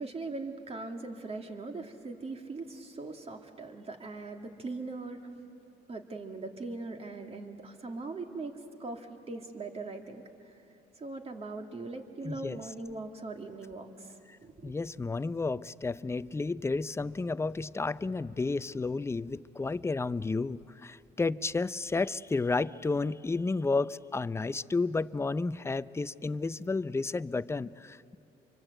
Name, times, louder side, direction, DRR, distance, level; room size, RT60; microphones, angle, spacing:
voice 1, 0.0-5.3 5.9-10.6 11.0-14.7, right 3 dB, 35° right, 4 dB, 2.3 m, -40 dB
voice 2, 12.2-12.6 14.3-14.4 14.6-28.2, left 3 dB, 15° left, 16 dB, 0.5 m, -32 dB
26.0 x 24.5 x 7.9 m, 2.8 s
supercardioid pair, 80°, 17 cm